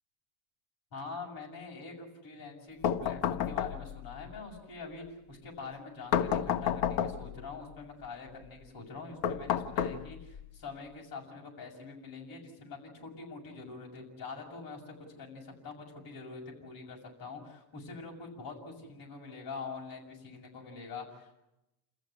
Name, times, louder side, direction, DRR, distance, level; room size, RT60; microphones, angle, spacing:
voice 1, 0.9-21.3, left 4 dB, 45° left, 0 dB, 6.9 m, -45 dB
sound 1, 2.8-4.1 6.1-7.4 9.2-10.4, left 9 dB, 75° left, 1.7 m, -30 dB
29.5 x 14.5 x 9.6 m, 0.92 s
cardioid pair, 150°, 49 cm